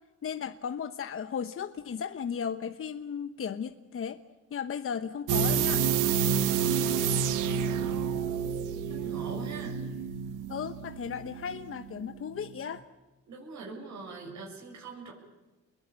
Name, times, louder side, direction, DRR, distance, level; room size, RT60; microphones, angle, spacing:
voice 1, 0.2-4.2 4.5-5.9 10.5-12.8, left 7 dB, 45° left, 9 dB, 1.1 m, -35 dB
sound 1, 5.3-12.1 12.4-12.5, right 7 dB, 90° right, 1.6 m, -29 dB
voice 2, 7.0-8.1 8.9-9.8 13.3-15.1, right 3 dB, 70° right, -1 dB, 7.8 m, -42 dB
28.5 x 21.5 x 8.8 m, 1.1 s
cardioid pair, 90°, 30 cm